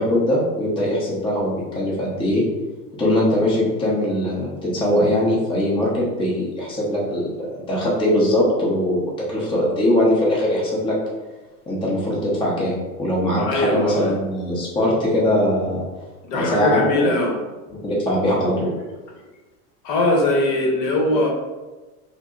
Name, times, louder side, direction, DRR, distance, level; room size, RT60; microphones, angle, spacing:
voice 1, 0.0-2.4 3.0-11.0 11.7-15.8 16.3-17.1 17.7-18.7, left 1 dB, 10° left, -5 dB, 0.7 m, -21 dB
voice 2, 13.4-14.1 16.2-17.4 19.8-21.3, left 2 dB, 50° left, -1 dB, 0.9 m, -21 dB
4.5 x 2.0 x 2.4 m, 1.2 s
hypercardioid pair, 100°, 47 cm